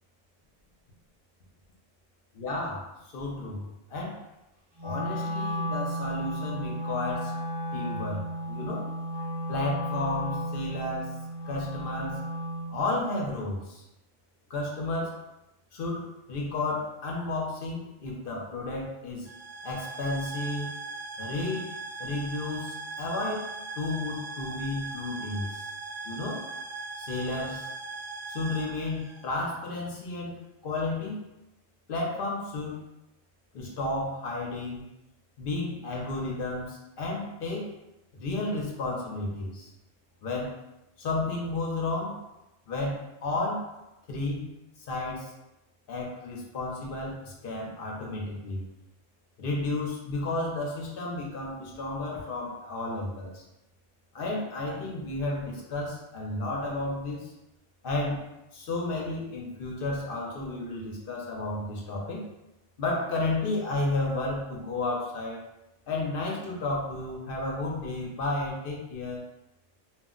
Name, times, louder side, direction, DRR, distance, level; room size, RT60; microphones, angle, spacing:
voice 1, 2.3-4.2 4.8-7.3 7.7-8.9 9.5-11.2 11.5-12.2 12.7-13.8 14.5-15.2 15.7-19.3 19.6-20.7 21.2-25.6 26.0-26.4 27.0-27.7 28.3-31.2 31.9-32.9 33.5-34.9 35.4-37.7 38.1-39.7 40.2-40.5 41.0-42.2 42.7-43.7 44.1-44.5 44.9-45.3 45.9-48.7 49.4-53.4 54.1-57.3 57.8-62.2 62.8-65.5 65.9-69.3, left 2 dB, 55° left, -2 dB, 0.7 m, -32 dB
Wind instrument woodwind instrument, 4.8-12.8, equal, 20° right, 0.6 m, -33 dB
sound 1, 19.2-29.8, right 3 dB, 85° right, 1.0 m, -39 dB
2.3 x 2.1 x 3.6 m, 0.93 s
omnidirectional pair, 1.3 m